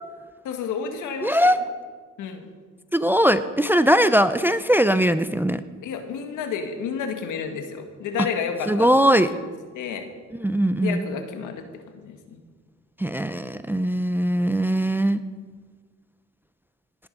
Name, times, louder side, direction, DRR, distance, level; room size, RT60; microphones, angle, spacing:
voice 1, 0.4-1.5 2.2-2.5 5.8-9.5 9.7-10.1 10.8-12.4, left 6 dB, 90° left, 6 dB, 1.8 m, -31 dB
voice 2, 1.2-1.6 2.9-5.6 8.7-9.3 10.3-11.0 13.0-15.2, equal, 5° right, 12 dB, 0.5 m, -20 dB
18.5 x 9.9 x 5.4 m, 1.5 s
cardioid pair, 90°, 30 cm